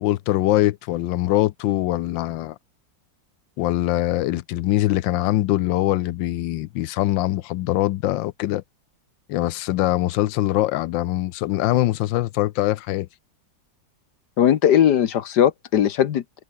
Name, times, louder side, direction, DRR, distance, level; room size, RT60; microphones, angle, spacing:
voice 1, 0.0-2.6 3.6-8.6 9.3-13.1, left 16 dB, 90° left, 1.4 m, -22 dB
voice 2, 14.4-16.4, left 10 dB, 70° left, 1.5 m, -19 dB
omnidirectional pair, 2.0 m